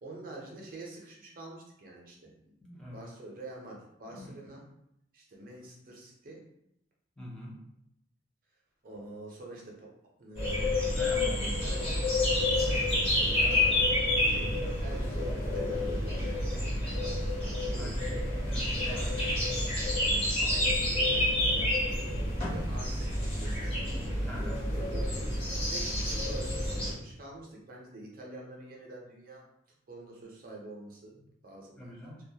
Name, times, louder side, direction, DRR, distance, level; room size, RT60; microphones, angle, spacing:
voice 1, 0.0-2.3 2.7-4.6 5.1-6.4 8.8-9.9 10.2-11.0 11.2-12.3 12.6-14.0 14.3-14.6 14.8-17.1 17.4-18.2 18.9-19.3 20.0-21.2 21.5-23.9 24.3-24.5 24.8-25.0 25.4-29.4 29.9-31.1 31.4-31.9, right 2 dB, 50° right, -2 dB, 0.5 m, -46 dB
voice 2, 2.6-3.0 4.1-4.6 7.2-7.5 10.8-11.6 14.3-14.6 17.7-18.0 18.4-19.2 20.4-20.6 24.2-24.6 31.7-32.2, equal, 5° left, -5 dB, 0.5 m, -45 dB
sound 1, 10.4-26.9, left 1 dB, 30° left, 0.8 m, -29 dB
2.2 x 2.0 x 2.7 m, 0.77 s
head